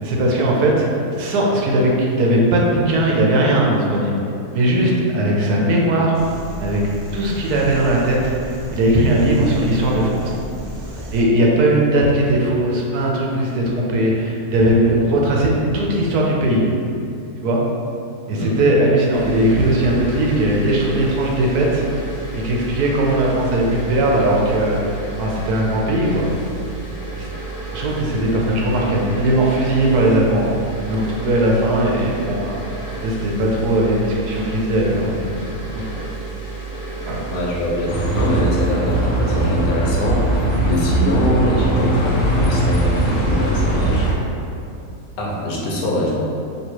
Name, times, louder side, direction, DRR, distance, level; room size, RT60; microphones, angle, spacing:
voice 1, 0.0-0.8 1.2-4.1 4.5-6.2 6.6-6.8 7.1-8.3 8.7-10.3 11.1-16.6 17.4-17.6 18.3-21.8 22.3-26.3 27.2-27.3 27.7-30.6 30.9-32.5 33.0-35.8 37.0-37.2, right 1 dB, 80° right, -2 dB, 1.2 m, -18 dB
sound 1, 6.1-11.2, right 1 dB, 45° right, 0.6 m, -33 dB
voice 2, 18.3-18.6 27.9-28.0 37.3-44.1 45.2-46.1, left 1 dB, 75° left, -3 dB, 1.2 m, -23 dB
sound 2, 19.1-38.4, right 3 dB, 25° left, 1.1 m, -31 dB
Bus, 37.9-44.1, right 1 dB, 50° left, 0.6 m, -19 dB
3.1 x 2.9 x 4.5 m, 2.6 s
omnidirectional pair, 1.6 m